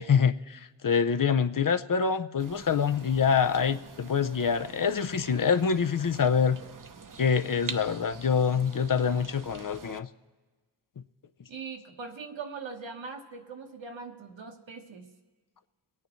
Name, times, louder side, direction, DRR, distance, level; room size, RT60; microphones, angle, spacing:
voice 1, 0.0-6.6 7.2-10.1, left 6 dB, 45° left, 10 dB, 0.6 m, -25 dB
sound 1, 2.4-10.0, right 5 dB, 45° right, 0.8 m, -45 dB
voice 2, 11.5-15.1, right 5 dB, 75° right, 3 dB, 1.3 m, -41 dB
23.5 x 9.3 x 3.1 m, 1.3 s
cardioid pair, 45°, 46 cm